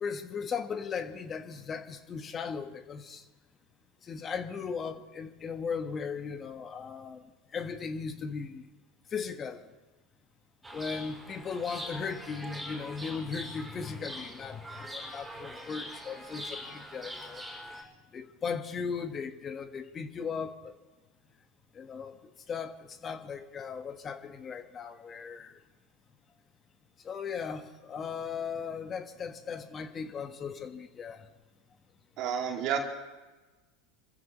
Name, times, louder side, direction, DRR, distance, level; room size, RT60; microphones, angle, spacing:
voice 1, 0.0-3.2 4.1-7.2 7.5-8.6 9.1-9.6 10.7-17.4 18.1-20.7 21.7-22.1 22.5-22.8 23.0-25.5 27.0-31.2, left 6 dB, 30° left, 9 dB, 1.3 m, -37 dB
Chirp tweet, 10.6-17.8, equal, 10° right, 5.5 m, -43 dB
voice 2, 32.2-32.8, right 8 dB, 55° right, 1 dB, 2.4 m, -30 dB
26.0 x 15.0 x 3.1 m, 1.2 s
hypercardioid pair, 90°, 0 cm